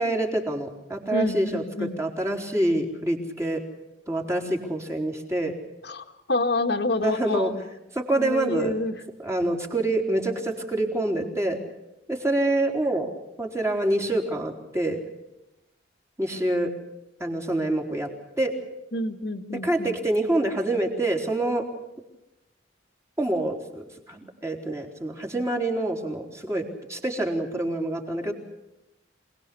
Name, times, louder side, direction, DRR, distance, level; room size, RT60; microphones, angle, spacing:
voice 1, 0.0-3.6 4.1-5.6 7.0-7.5 7.9-8.7 9.2-11.6 12.1-13.1 13.4-15.0 16.2-16.7 17.2-18.1 18.4-18.6 19.5-21.7 23.2-28.3, right 1 dB, 15° right, 2 dB, 3.8 m, -26 dB
voice 2, 1.1-1.9 5.8-7.5 8.2-8.9 18.9-19.9, left 2 dB, 60° left, 5 dB, 2.0 m, -28 dB
27.0 x 19.5 x 8.5 m, 0.90 s
head